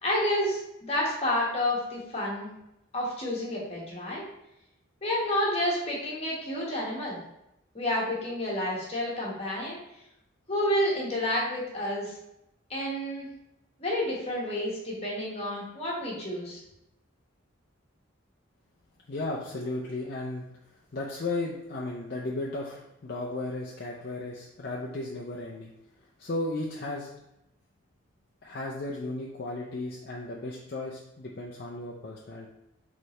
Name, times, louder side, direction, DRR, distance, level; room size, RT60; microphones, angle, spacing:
voice 1, 0.0-2.5 2.9-4.2 5.0-7.2 7.7-9.8 10.5-12.1 12.7-13.3 13.8-16.6, left 1 dB, 30° left, -4 dB, 1.3 m, -29 dB
voice 2, 19.1-20.5 20.9-25.7 26.2-27.1 28.4-32.5, left 2 dB, 50° left, -3 dB, 0.5 m, -35 dB
4.5 x 3.3 x 3.1 m, 0.84 s
head